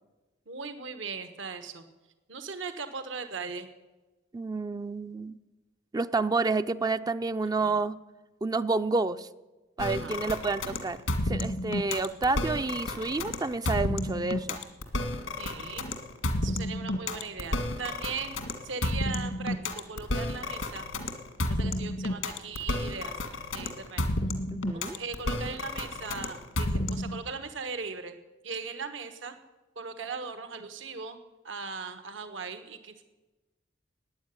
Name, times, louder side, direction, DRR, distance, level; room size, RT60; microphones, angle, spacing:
voice 1, 0.5-1.8 2.3-3.7 9.8-10.4 15.4-15.9 16.4-18.3 18.6-20.8 21.6-23.1 23.5-24.0 24.7-28.2 28.4-29.4 29.8-33.0, right 5 dB, 70° right, 9 dB, 1.2 m, -39 dB
voice 2, 4.3-5.4 5.9-8.0 8.4-9.3 9.8-14.6 24.5-25.0, right 3 dB, 20° right, 11 dB, 0.4 m, -29 dB
sound 1, 9.8-27.2, left 1 dB, 90° left, 1.9 m, -31 dB
13.5 x 9.5 x 9.7 m, 1.1 s
head